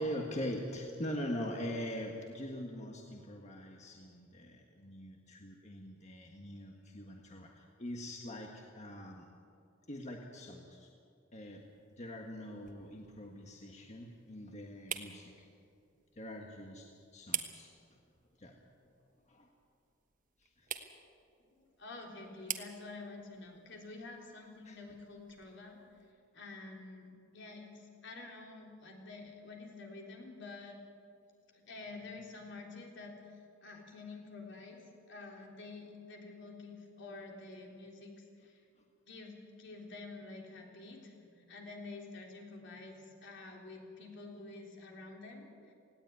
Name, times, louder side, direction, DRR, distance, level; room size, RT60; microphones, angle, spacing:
voice 1, 0.0-9.3 9.9-10.9 11.3-15.5 16.1-17.7 18.4-18.6 19.3-19.5 20.4-20.7 24.6-24.8, equal, 35° left, 1 dB, 1.6 m, -43 dB
sound 1, 11.3-26.1, right 9 dB, 45° right, 1.4 m, -48 dB
voice 2, 21.6-25.8 26.3-30.7 31.5-34.8 35.1-38.6 39.1-45.7, left 3 dB, 65° left, 1 dB, 3.7 m, -49 dB
19.0 x 16.5 x 9.4 m, 2.4 s
head